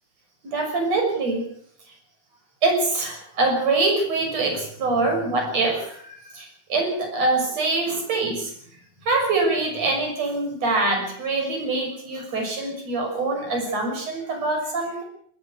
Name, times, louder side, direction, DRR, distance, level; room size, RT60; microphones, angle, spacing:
voice 1, 0.4-1.4 1.9-2.0 2.6-8.5 9.0-15.0, right 3 dB, 45° right, 2 dB, 7.4 m, -24 dB
20.0 x 15.5 x 8.3 m, 0.64 s
omnidirectional pair, 4.1 m